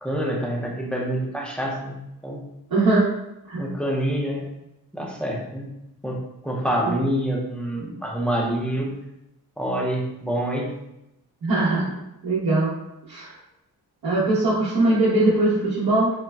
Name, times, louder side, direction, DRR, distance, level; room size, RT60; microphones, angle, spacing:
voice 1, 0.0-2.4 3.5-4.5 4.9-5.7 6.0-8.9 9.6-10.7, right 1 dB, 5° left, -2 dB, 0.6 m, -27 dB
voice 2, 2.7-3.1 3.5-3.6 6.9-7.0 11.4-11.9 12.2-12.7 13.1-13.3 14.0-16.1, right 2 dB, 70° right, -9 dB, 0.8 m, -20 dB
4.0 x 2.1 x 2.3 m, 0.89 s
wide cardioid pair, 85°, 38 cm